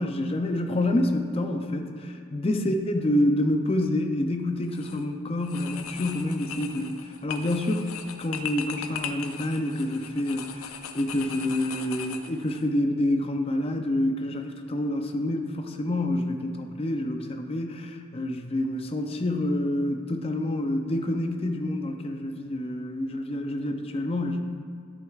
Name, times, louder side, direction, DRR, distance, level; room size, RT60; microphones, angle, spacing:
voice 1, 0.0-7.9 8.2-24.4, left 1 dB, 25° left, 5 dB, 0.5 m, -27 dB
sound 1, 4.6-5.0 5.4-12.6, left 7 dB, 80° left, 0.5 m, -38 dB
9.8 x 7.8 x 2.4 m, 2.4 s
head